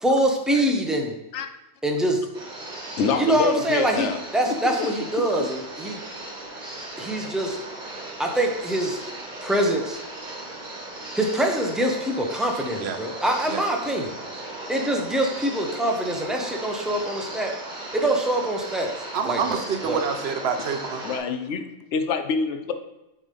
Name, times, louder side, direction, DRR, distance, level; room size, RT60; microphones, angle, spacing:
voice 1, 0.0-1.1 1.8-2.2 3.2-6.0 7.0-7.6 8.2-9.0 9.4-10.0 11.1-14.1 14.7-17.5 17.9-18.9 19.2-19.6 19.9-20.0, right 1 dB, ahead, 2 dB, 0.6 m, -24 dB
sound 1, 2.3-21.2, right 2 dB, 40° right, 1.4 m, -37 dB
voice 2, 3.0-4.2 4.8-4.9 21.0-22.7, left 5 dB, 70° left, 8 dB, 0.9 m, -26 dB
voice 3, 19.1-21.0, right 6 dB, 60° right, 7 dB, 0.9 m, -27 dB
7.3 x 3.5 x 5.2 m, 0.96 s
omnidirectional pair, 1.3 m